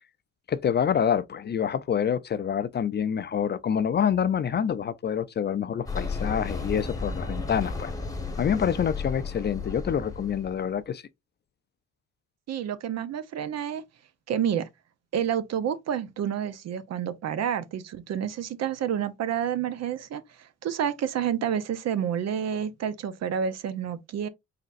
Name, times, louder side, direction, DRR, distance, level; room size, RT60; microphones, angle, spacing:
voice 1, 0.5-7.9 8.4-11.0, left 8 dB, 35° left, 0.4 m, -27 dB
sound 1, 5.9-10.7, left 4 dB, 10° left, 1.0 m, -33 dB
voice 2, 12.5-13.8 14.3-14.7 15.1-24.3, right 9 dB, 60° right, 0.6 m, -29 dB
4.2 x 3.9 x 2.4 m
cardioid pair, 90°, 30 cm